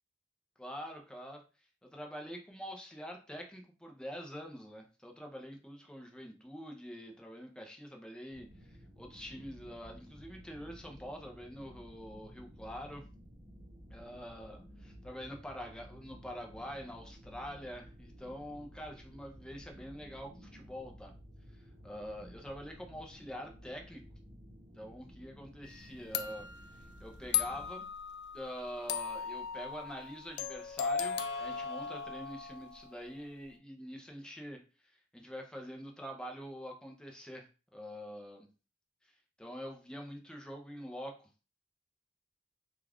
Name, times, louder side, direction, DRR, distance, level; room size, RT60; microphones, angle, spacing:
voice 1, 0.6-1.4 1.8-13.0 13.9-21.1 21.5-24.0 24.8-26.5 27.0-27.9 28.3-34.6 34.9-38.5 39.4-41.2, equal, 5° left, 2 dB, 0.5 m, -45 dB
sound 1, 8.3-27.7, equal, 55° right, 0.9 m, -54 dB
sound 2, 25.6-25.8 26.1-32.9, left 7 dB, 65° left, 0.3 m, -37 dB
2.4 x 2.3 x 3.3 m, 0.33 s
head